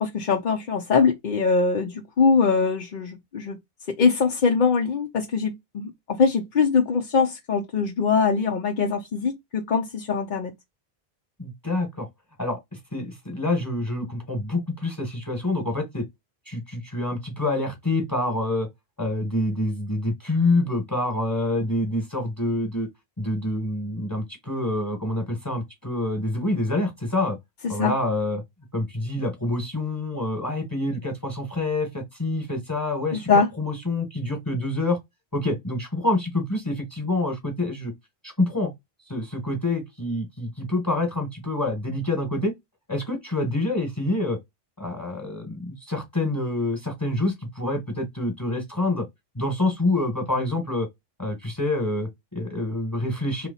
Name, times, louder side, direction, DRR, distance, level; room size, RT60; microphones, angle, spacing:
voice 1, 0.0-3.6 3.9-10.5 27.6-27.9 33.1-33.5, left 5 dB, 55° left, 0.8 m, -22 dB
voice 2, 11.4-12.1 12.4-16.0 16.5-18.7 19.0-22.9 23.2-27.4 27.7-28.4 28.7-35.0 35.3-37.9 38.2-38.7 39.1-42.5 42.9-44.4 44.8-49.0 49.3-50.9 51.2-53.5, left 2 dB, 20° left, 1.3 m, -27 dB
3.1 x 3.0 x 3.9 m
omnidirectional pair, 1.1 m